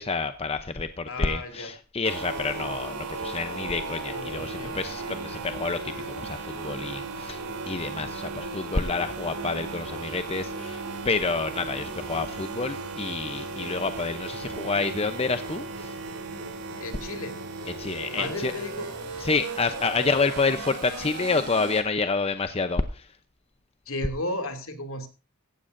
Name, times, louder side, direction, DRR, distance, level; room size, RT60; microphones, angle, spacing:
voice 1, 0.0-5.8 6.2-15.9 17.8-18.5 19.2-23.0, left 4 dB, 25° left, 9 dB, 0.7 m, -28 dB
voice 2, 1.1-1.7 4.1-4.7 16.8-17.4 18.2-18.9 23.9-25.1, left 1 dB, 65° left, 6 dB, 2.7 m, -34 dB
sound 1, 2.0-21.8, right 3 dB, 90° right, 3.3 m, -36 dB
16.0 x 15.0 x 2.6 m, 0.31 s
head